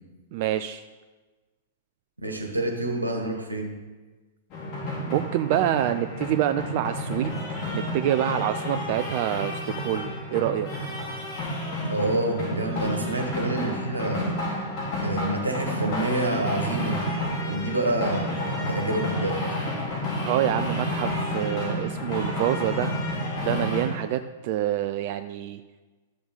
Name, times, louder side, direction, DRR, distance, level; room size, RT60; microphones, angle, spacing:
voice 1, 0.3-0.8 5.1-10.7 20.2-22.9 23.4-25.6, right 12 dB, 45° right, 10 dB, 0.4 m, -27 dB
voice 2, 2.2-3.7 11.9-14.3 15.0-17.0 17.4-19.4, right 2 dB, 85° right, 3 dB, 1.4 m, -28 dB
sound 1, 4.5-23.8, left 1 dB, 35° left, 3.1 m, -30 dB
12.5 x 6.9 x 3.9 m, 1.3 s
figure-of-eight pair, 100°, 0 cm